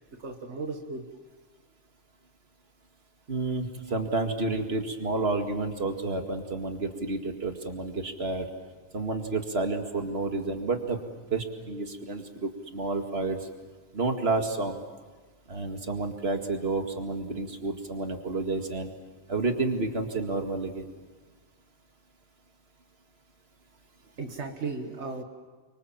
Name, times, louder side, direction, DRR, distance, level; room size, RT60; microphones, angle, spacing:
voice 1, 0.2-1.1 24.2-25.2, right 4 dB, 85° right, 4 dB, 1.8 m, -35 dB
voice 2, 3.3-8.5 8.9-11.0 11.3-13.5 13.9-14.8 15.5-18.9 19.3-20.9, right 3 dB, 65° right, 4 dB, 2.4 m, -30 dB
29.5 x 24.5 x 7.5 m, 1.3 s
omnidirectional pair, 1.1 m